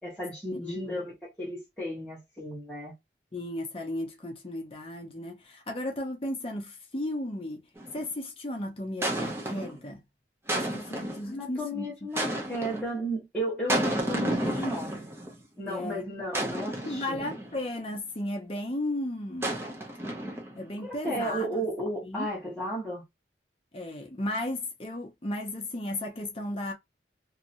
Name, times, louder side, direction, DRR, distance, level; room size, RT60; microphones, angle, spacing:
voice 1, 0.0-2.9 11.2-15.2 15.6-17.2 20.8-23.0, right 1 dB, 5° left, 1.2 m, -34 dB
voice 2, 0.5-1.1 3.3-7.6 7.9-10.0 10.5-11.9 15.7-16.1 16.7-19.5 20.6-21.5 22.0-22.3 23.7-26.7, left 1 dB, 30° left, 0.6 m, -35 dB
sound 1, 7.8-8.1 9.0-9.8 10.5-11.3 12.2-12.9 13.7-15.3 16.3-17.6 19.4-20.7, right 1 dB, 15° right, 0.6 m, -31 dB
2.9 x 2.7 x 2.5 m
head